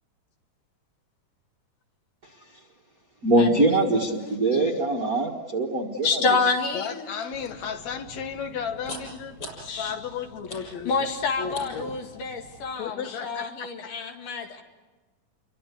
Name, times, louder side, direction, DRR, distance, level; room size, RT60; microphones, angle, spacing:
voice 1, 3.2-6.2, right 2 dB, 40° right, 1 dB, 1.4 m, -23 dB
voice 2, 3.9-4.7 6.0-7.1 9.6-9.9 10.9-14.6, left 4 dB, 80° left, 4 dB, 3.8 m, -28 dB
voice 3, 6.7-9.4 9.8-11.1 11.4-12.2 12.8-13.7, left 7 dB, 65° left, 7 dB, 2.5 m, -34 dB
sound 1, 7.3-12.7, left 1 dB, 40° left, 7.4 m, -43 dB
29.0 x 23.5 x 8.3 m, 1.2 s
omnidirectional pair, 3.7 m